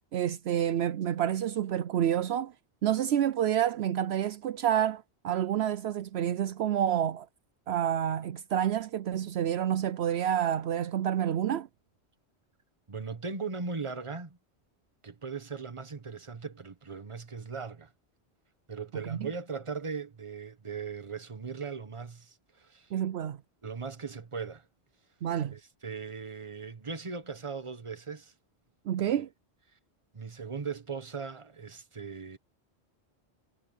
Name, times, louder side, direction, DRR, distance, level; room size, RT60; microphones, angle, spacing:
voice 1, 0.1-2.5 2.8-7.3 7.7-11.7 19.1-19.2 22.9-23.4 25.2-25.5 28.9-29.3, right 10 dB, 70° right, 0.8 m, -28 dB
voice 2, 12.9-14.4 15.0-17.9 18.7-22.9 23.6-24.7 25.5-28.3 29.0-29.2 30.1-32.4, right 5 dB, 30° right, 1.2 m, -39 dB
omnidirectional pair, 1.1 m